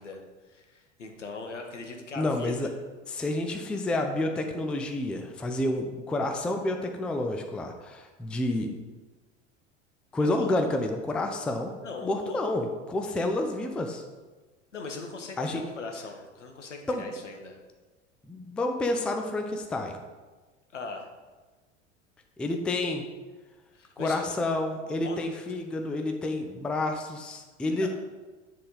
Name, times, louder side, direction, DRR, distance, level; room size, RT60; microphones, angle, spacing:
voice 1, 0.0-2.8 10.2-10.7 11.8-12.4 14.7-17.6 20.7-21.1 23.7-24.4 24.9-25.4 27.8-27.9, left 3 dB, 80° left, 3 dB, 1.1 m, -40 dB
voice 2, 2.2-2.7 3.1-8.7 10.1-11.7 12.0-14.0 15.4-15.6 16.9-17.0 18.3-20.0 22.4-23.0 24.0-27.9, left 2 dB, 5° left, 4 dB, 0.4 m, -29 dB
9.7 x 3.6 x 3.9 m, 1.3 s
figure-of-eight pair, 80°, 37 cm